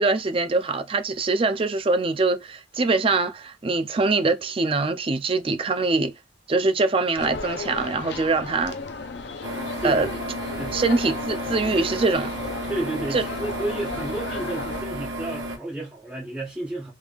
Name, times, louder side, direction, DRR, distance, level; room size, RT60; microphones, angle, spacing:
voice 1, 0.0-6.1 6.5-8.8 9.8-10.1 10.7-12.3 13.1-13.2, right 3 dB, 30° right, 0.4 m, -23 dB
sound 1, 7.1-14.8, left 4 dB, 65° left, 0.5 m, -35 dB
sound 2, 9.4-15.6, right 1 dB, 75° right, 1.3 m, -33 dB
voice 2, 12.7-16.9, right 2 dB, 10° right, 1.2 m, -31 dB
3.6 x 3.2 x 2.3 m
head